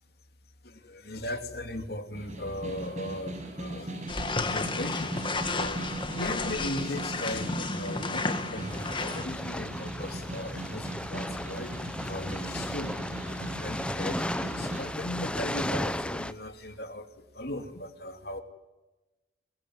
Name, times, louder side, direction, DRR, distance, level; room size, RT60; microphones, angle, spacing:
voice 1, 0.6-4.1 4.4-11.7 12.0-18.4, left 1 dB, 60° left, 7 dB, 2.7 m, -38 dB
Snare drum, 2.1-14.9, right 1 dB, 40° right, 6.5 m, -39 dB
sound 1, 4.1-9.2, left 3 dB, 25° left, 1.7 m, -32 dB
sound 2, 8.7-16.3, left 1 dB, 5° left, 0.9 m, -35 dB
23.5 x 21.5 x 9.7 m, 1.1 s
head